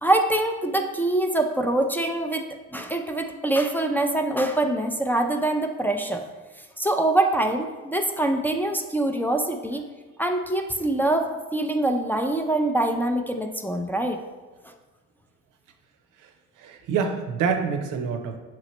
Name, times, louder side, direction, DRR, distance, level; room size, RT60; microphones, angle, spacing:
voice 1, 0.0-6.2 6.8-9.9 10.2-14.2, right 2 dB, 5° left, 3 dB, 0.3 m, -24 dB
voice 2, 16.6-18.4, right 6 dB, 85° right, 6 dB, 0.6 m, -26 dB
5.8 x 3.1 x 2.9 m, 1.2 s
cardioid pair, 90°, 30 cm